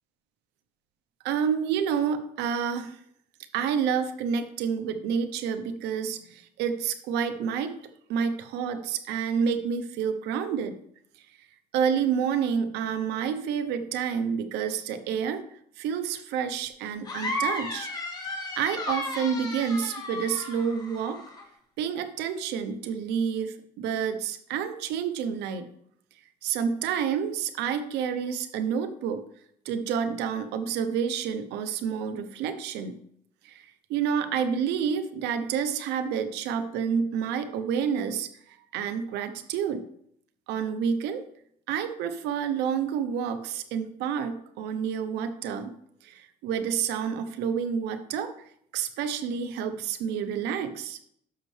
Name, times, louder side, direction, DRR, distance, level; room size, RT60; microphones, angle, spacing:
voice 1, 1.2-3.0 3.5-7.7 8.1-10.8 11.7-15.4 15.8-17.9 18.5-21.2 21.8-25.7 26.4-29.2 29.6-32.9 33.4-39.8 40.5-41.2 41.7-45.7 46.0-48.3 48.7-51.0, right 7 dB, 90° right, 9 dB, 0.9 m, -29 dB
sound 1, 17.0-21.4, left 1 dB, 25° left, 2.1 m, -34 dB
12.5 x 5.4 x 3.3 m, 0.68 s
cardioid pair, 110°, 17 cm